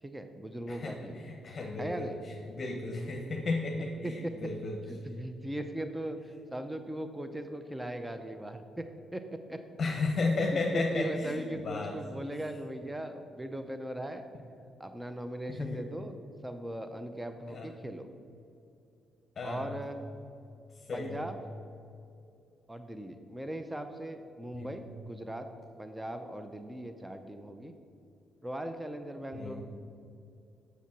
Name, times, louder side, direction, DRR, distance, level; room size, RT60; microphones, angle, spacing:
voice 1, 0.0-1.2 1.8-2.2 3.8-4.2 4.9-9.6 10.7-14.2 14.8-18.1 19.4-20.0 20.9-21.4 22.7-25.5 25.8-27.7 28.4-29.6, right 1 dB, 10° right, 8 dB, 0.6 m, -39 dB
voice 2, 0.7-2.1 2.5-4.8 9.8-12.0 15.5-15.8 17.5-17.7 19.4-19.7 20.8-21.2 24.5-24.7 29.3-29.6, left 3 dB, 40° left, 0 dB, 1.1 m, -33 dB
7.2 x 7.0 x 5.9 m, 2.6 s
cardioid pair, 90°, 0 cm